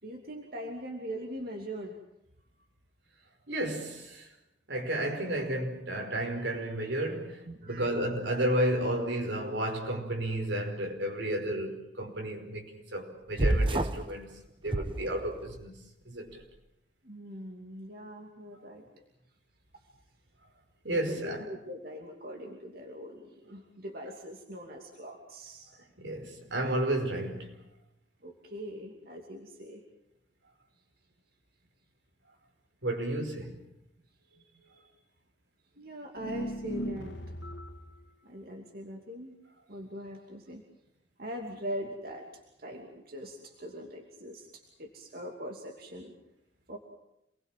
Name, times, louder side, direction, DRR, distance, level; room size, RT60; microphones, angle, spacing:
voice 1, 0.0-2.0 7.5-7.9 17.0-18.9 20.9-25.7 28.2-29.8 34.3-34.9 35.8-37.2 38.2-39.4 39.7-40.6 41.2-42.3 42.6-46.2 46.7-46.8, equal, 55° right, 2.8 m, -42 dB
voice 2, 3.5-4.3 4.7-14.3 14.6-15.7 16.1-16.4 20.8-21.4 26.0-27.6 32.8-33.6, right 1 dB, 85° right, 5.2 m, -32 dB
sound 1, 13.4-14.1 14.7-15.6, right 1 dB, 30° right, 1.0 m, -28 dB
sound 2, 36.2-38.0, equal, 80° left, 2.1 m, -37 dB
28.0 x 21.0 x 7.6 m
head